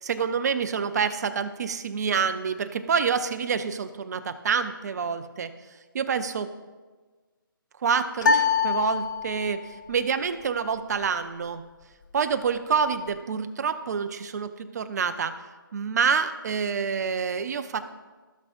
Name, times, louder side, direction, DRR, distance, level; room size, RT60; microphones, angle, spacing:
voice 1, 0.0-5.5 5.9-6.5 7.8-11.6 12.1-15.4 15.7-17.8, right 6 dB, 50° right, 10 dB, 0.6 m, -27 dB
sound 1, 8.2-9.7, left 5 dB, 55° left, 0.9 m, -24 dB
15.5 x 6.4 x 2.6 m, 1.3 s
figure-of-eight pair, 150°, 12 cm